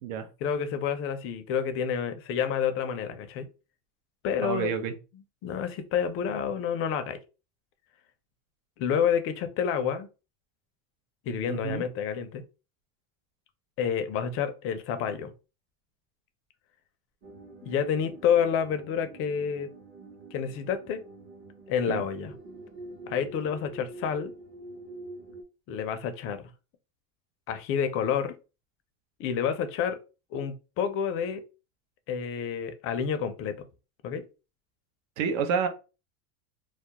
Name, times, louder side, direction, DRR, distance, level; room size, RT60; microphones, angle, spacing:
voice 1, 0.4-3.5 4.2-4.7 5.4-7.2 8.8-10.1 11.3-12.4 13.8-15.3 17.6-19.7 20.3-21.0 21.7-22.3 23.1-24.3 25.7-26.5 27.5-28.3 29.2-30.0 30.3-31.4 32.1-33.5 34.0-34.2, left 7 dB, 35° left, 0.4 m, -29 dB
voice 2, 4.4-4.9 11.5-11.8 21.9-22.0 35.2-35.7, right 6 dB, 75° right, 0.7 m, -29 dB
sound 1, 17.2-25.4, right 2 dB, 30° right, 0.6 m, -46 dB
2.3 x 2.0 x 2.8 m
supercardioid pair, 130°, 40 cm